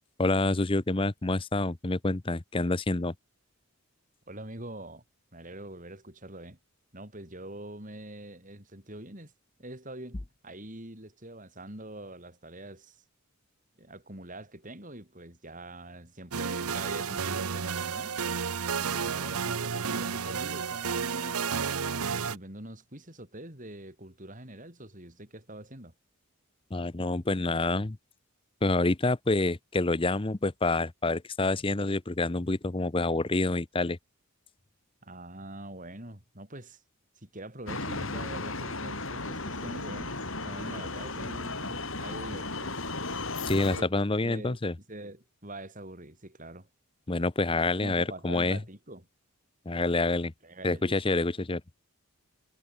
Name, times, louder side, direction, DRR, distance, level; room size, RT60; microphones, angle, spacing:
voice 1, 0.2-3.1 26.7-28.0 28.6-34.0 43.5-44.7 47.1-48.6 49.7-50.3 50.6-51.6, left 2 dB, 25° left, 0.7 m, -27 dB
voice 2, 4.3-5.0 5.3-6.6 6.9-9.3 9.6-13.0 13.8-18.1 18.7-25.9 35.0-36.8 37.2-40.2 40.4-42.8 43.5-43.9 44.2-44.6 44.9-46.7 47.8-49.1 50.4-51.2, right 1 dB, 35° right, 5.9 m, -44 dB
sound 1, 16.3-22.4, right 6 dB, 80° right, 0.9 m, -31 dB
sound 2, 37.7-43.8, left 3 dB, 60° left, 6.5 m, -35 dB
head